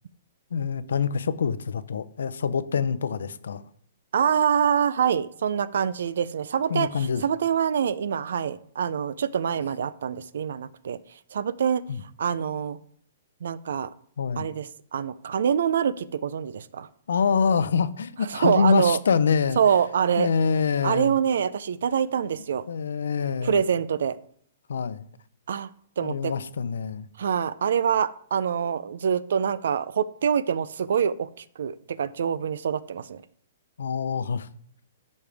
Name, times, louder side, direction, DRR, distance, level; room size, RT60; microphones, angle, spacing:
voice 1, 0.5-3.6 6.7-7.2 11.9-12.0 14.2-14.5 17.1-19.6 20.2-21.2 22.7-23.6 24.7-25.1 26.0-27.1 33.8-34.5, left 6 dB, 85° left, 0.6 m, -25 dB
voice 2, 4.1-11.0 11.3-11.8 12.2-12.8 13.4-13.9 14.4-16.9 18.3-19.0 19.6-20.3 20.8-22.6 23.4-24.2 25.5-25.7 26.0-26.3 27.2-33.2, right 7 dB, 60° right, 0.4 m, -25 dB
14.0 x 5.3 x 3.4 m
hypercardioid pair, 180°, 0 cm